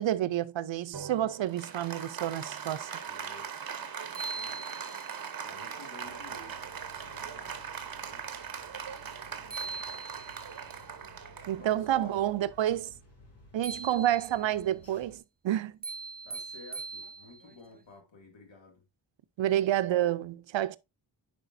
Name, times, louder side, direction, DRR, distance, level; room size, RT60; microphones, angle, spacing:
voice 1, 0.0-2.9 11.5-12.9 13.5-15.8 19.4-20.8, right 12 dB, 75° right, 0.6 m, -29 dB
Applause, 0.9-12.8, right 7 dB, 50° right, 1.0 m, -41 dB
voice 2, 3.1-3.7 4.1-4.7 5.4-8.3 11.5-12.3 16.2-18.8 19.4-19.6, left 3 dB, 80° left, 2.4 m, -52 dB
sound 1, 3.7-3.8 4.1-5.2 9.1-9.2 9.5-10.6 13.6-14.5 15.8-17.6, right 4 dB, 20° right, 0.5 m, -41 dB
sound 2, 6.0-15.2, left 1 dB, 30° left, 2.6 m, -57 dB
9.9 x 5.0 x 2.6 m
wide cardioid pair, 90°, 45 cm